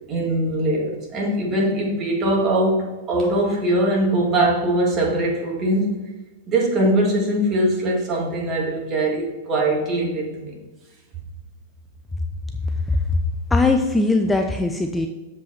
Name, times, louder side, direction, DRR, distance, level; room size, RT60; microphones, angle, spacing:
voice 1, 0.1-6.0 6.5-10.6, right 1 dB, 35° right, -1 dB, 2.3 m, -21 dB
voice 2, 13.5-15.1, left 2 dB, 10° left, 4 dB, 0.5 m, -20 dB
7.4 x 5.3 x 4.3 m, 1.2 s
hypercardioid pair, 115°, 0 cm